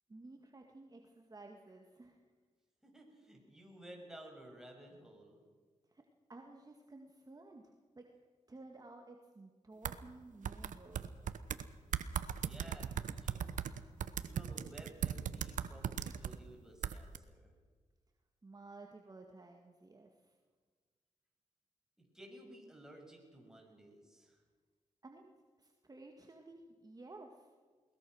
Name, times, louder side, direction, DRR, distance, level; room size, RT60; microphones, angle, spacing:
voice 1, 0.1-2.2 5.9-6.0 6.3-8.0 8.5-11.1 18.4-20.3 25.0-25.3 25.6-27.5, right 2 dB, 30° right, 2 dB, 2.0 m, -54 dB
voice 2, 2.8-5.4 12.4-13.4 13.8-17.5 22.0-24.4, right 1 dB, 5° right, 1 dB, 6.6 m, -55 dB
sound 1, 9.8-10.0 10.4-11.6 11.9-16.4 16.8-17.2, right 9 dB, 80° right, 1.0 m, -37 dB
21.5 x 20.0 x 6.4 m, 1.5 s
cardioid pair, 75°, 13 cm